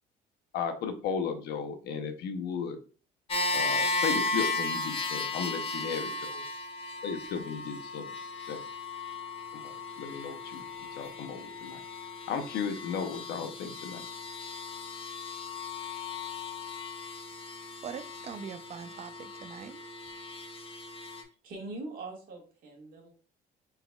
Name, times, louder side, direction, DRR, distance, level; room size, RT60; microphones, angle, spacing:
voice 1, 0.5-2.8 3.5-6.4 7.0-8.1 8.5-8.6 9.5-10.6 10.9-11.8 12.3-14.1, left 6 dB, 75° left, 0.8 m, -35 dB
sound 1, 3.3-21.2, left 3 dB, 35° left, 0.8 m, -36 dB
voice 2, 17.8-19.9, right 7 dB, 40° right, 0.4 m, -42 dB
voice 3, 21.2-23.1, right 2 dB, 60° right, 1.8 m, -43 dB
4.0 x 4.0 x 2.3 m
cardioid pair, 110°, 17 cm